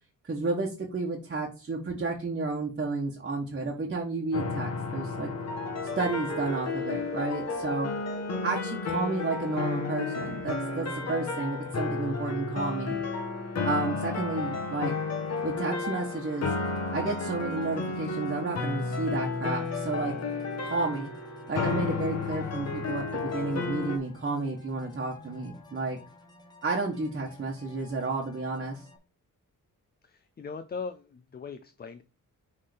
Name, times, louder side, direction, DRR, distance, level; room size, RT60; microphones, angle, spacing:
voice 1, 0.2-5.3 5.9-7.9 8.4-13.0 13.6-14.9 15.4-16.5 16.9-20.1 20.6-21.1 21.5-26.0 26.6-28.8, right 3 dB, 35° right, -1 dB, 1.4 m, -31 dB
sound 1, 4.3-24.0, left 4 dB, 50° left, 1.5 m, -32 dB
sound 2, 5.6-13.2, equal, 10° right, 0.7 m, -45 dB
sound 3, 15.3-29.0, left 3 dB, 10° left, 1.4 m, -53 dB
voice 2, 30.0-32.0, left 5 dB, 30° left, 10 dB, 0.5 m, -39 dB
6.4 x 3.7 x 5.1 m, 0.33 s
wide cardioid pair, 130°, 33 cm